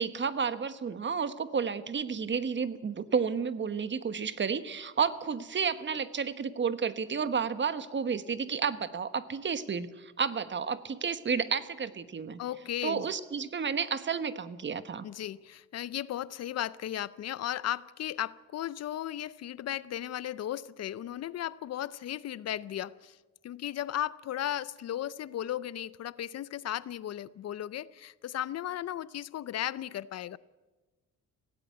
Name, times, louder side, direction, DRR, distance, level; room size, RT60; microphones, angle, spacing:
voice 1, 0.0-12.4 12.8-15.0, right 6 dB, 40° right, 1.2 m, -31 dB
voice 2, 12.4-13.1 15.0-23.2 23.4-30.4, left 12 dB, 55° left, 0.6 m, -36 dB
17.0 x 16.5 x 9.2 m
cardioid pair, 90°, 30 cm